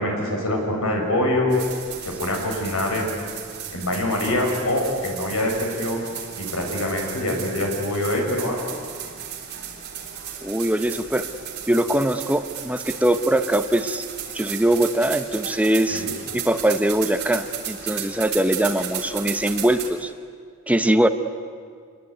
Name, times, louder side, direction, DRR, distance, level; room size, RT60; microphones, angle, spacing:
voice 1, 0.0-1.6 2.1-3.2 3.7-6.0 6.4-8.6 15.9-16.1, left 1 dB, 75° left, 1 dB, 6.8 m, -24 dB
sound 1, 1.5-19.9, right 8 dB, 50° right, 3.6 m, -34 dB
voice 2, 10.4-11.3 11.7-14.0 14.3-16.0 16.3-20.1 20.7-21.1, right 1 dB, 5° right, 8 dB, 1.0 m, -22 dB
26.5 x 22.0 x 9.5 m, 2.1 s
head